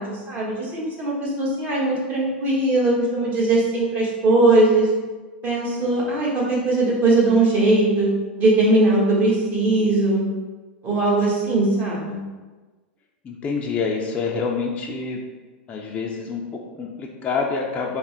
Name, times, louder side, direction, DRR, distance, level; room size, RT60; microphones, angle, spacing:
voice 1, 0.0-4.9 5.4-8.1 8.4-10.2 10.8-12.2, right 2 dB, 30° right, -5 dB, 1.3 m, -20 dB
voice 2, 13.2-15.2 15.7-18.0, left 4 dB, 25° left, -1 dB, 0.4 m, -27 dB
3.2 x 2.1 x 4.2 m, 1.3 s
hypercardioid pair, 120°, 6 cm